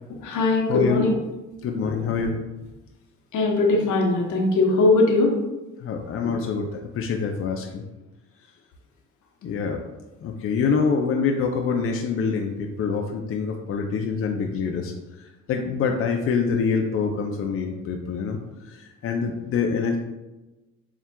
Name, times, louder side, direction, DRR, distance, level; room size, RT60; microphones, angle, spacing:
voice 1, 0.2-1.1 1.8-1.9 3.3-5.3, left 2 dB, 75° left, 0 dB, 1.0 m, -20 dB
voice 2, 1.6-2.4 4.7-4.8 5.8-6.7 6.9-7.8 9.4-9.8 10.2-14.9 15.5-18.4 18.7-20.0, left 5 dB, 50° left, 2 dB, 0.5 m, -25 dB
7.1 x 2.4 x 2.2 m, 1.0 s
cardioid pair, 90°, 30 cm